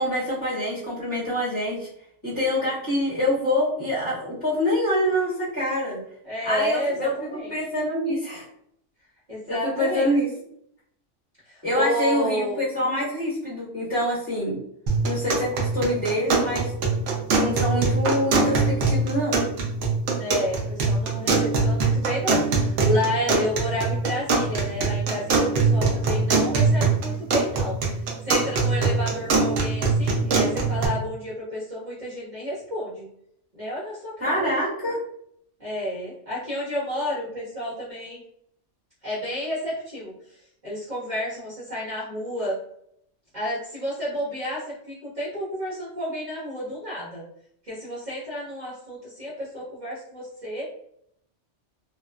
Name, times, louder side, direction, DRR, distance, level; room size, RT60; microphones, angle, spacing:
voice 1, 0.0-1.9 2.2-6.0 6.4-8.4 9.5-10.3 11.6-14.6 15.0-16.7 17.3-19.4 34.2-35.0, equal, 25° left, -10 dB, 1.3 m, -25 dB
voice 2, 6.2-7.5 9.3-10.1 11.5-12.6 20.1-27.8 28.2-33.1 33.5-34.5 35.6-38.2 39.0-40.4 40.6-42.6 43.3-47.2 47.7-50.6, equal, 40° right, -10 dB, 1.1 m, -30 dB
sound 1, 14.9-30.9, right 3 dB, 75° right, 0.9 m, -23 dB
2.7 x 2.2 x 2.3 m, 0.70 s
omnidirectional pair, 1.3 m